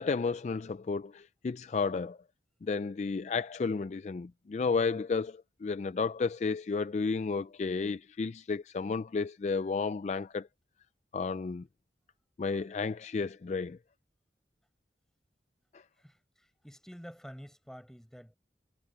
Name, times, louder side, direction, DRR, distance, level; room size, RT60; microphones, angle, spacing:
voice 1, 0.0-2.2 2.6-10.5 11.1-11.6 12.4-13.8 15.7-15.8, left 4 dB, 40° left, 0.3 m, -32 dB
voice 2, 16.0-18.3, equal, 5° left, 7.7 m, -49 dB
head